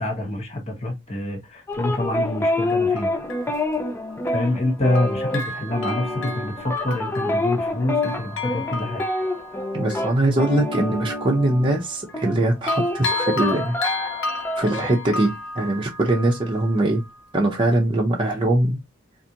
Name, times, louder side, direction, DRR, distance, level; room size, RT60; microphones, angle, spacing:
voice 1, 0.0-3.1 4.3-9.0, left 1 dB, 35° left, 1.1 m, -26 dB
Bell, 1.7-1.8 2.7-4.7 4.9-12.4 12.7-17.3 17.7-17.8, left 3 dB, 75° left, 0.8 m, -33 dB
sound 1, 1.7-11.9 12.1-14.9, left 2 dB, 10° left, 0.5 m, -27 dB
voice 2, 9.7-13.8 14.6-17.0 17.3-18.8, right 1 dB, 25° right, 0.7 m, -22 dB
4.0 x 2.6 x 2.8 m
head